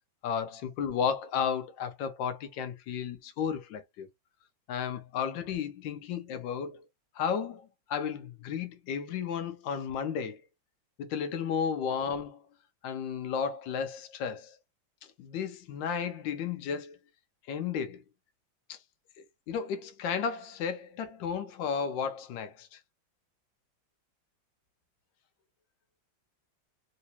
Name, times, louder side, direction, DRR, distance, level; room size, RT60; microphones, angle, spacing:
voice 1, 0.2-4.1 4.7-6.8 7.1-10.4 11.0-12.4 12.8-14.6 15.2-17.0 17.5-18.0 18.7-18.8 19.5-22.8, left 7 dB, 75° left, 1.3 m, -33 dB
3.2 x 2.9 x 2.8 m
omnidirectional pair, 2.1 m